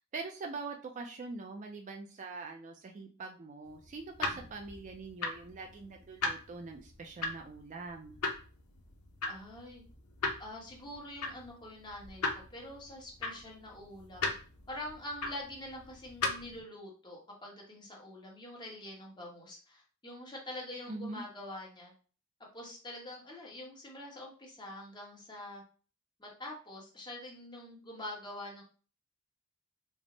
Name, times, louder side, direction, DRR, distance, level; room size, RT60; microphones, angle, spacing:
voice 1, 0.1-8.2 20.9-21.2, right 3 dB, 35° right, 3 dB, 0.3 m, -43 dB
sound 1, 3.7-16.6, left 3 dB, 75° left, 0.7 m, -39 dB
voice 2, 9.3-9.8 10.4-12.2 12.5-14.2 14.7-21.9 22.5-25.6 26.2-28.6, left 1 dB, 20° left, -2 dB, 1.0 m, -45 dB
3.4 x 2.0 x 3.7 m, 0.38 s
head